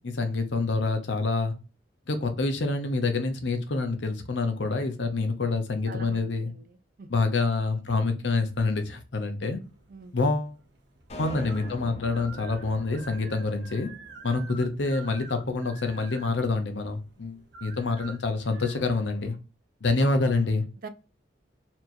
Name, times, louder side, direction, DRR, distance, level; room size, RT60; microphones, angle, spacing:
voice 1, 0.0-1.5 2.1-6.5 7.1-9.6 10.1-10.5 11.2-13.9 14.2-19.4 19.8-20.6, left 3 dB, 70° left, 0.7 m, -27 dB
voice 2, 5.9-7.2 9.9-10.2 20.8-20.9, right 3 dB, 50° right, 0.4 m, -44 dB
sound 1, 9.6-18.7, right 4 dB, 65° right, 0.9 m, -49 dB
sound 2, 11.1-15.5, left 1 dB, 35° left, 0.7 m, -44 dB
4.3 x 2.9 x 2.6 m
head